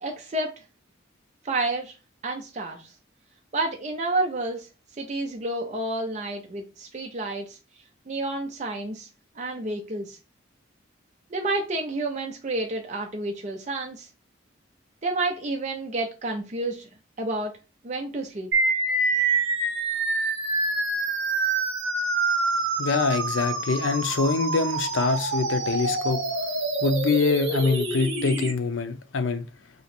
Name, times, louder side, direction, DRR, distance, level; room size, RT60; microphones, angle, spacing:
voice 1, 0.0-0.5 1.4-1.9 2.2-2.9 3.5-4.7 5.0-7.6 8.1-9.1 9.4-10.2 11.3-14.1 15.0-16.9 17.2-17.5 17.8-18.5, right 2 dB, 35° right, 0.4 m, -30 dB
sound 1, 18.5-28.5, right 3 dB, 65° right, 1.1 m, -26 dB
voice 2, 22.8-26.2 26.8-29.4, left 4 dB, 80° left, 0.6 m, -24 dB
3.0 x 2.8 x 4.3 m
head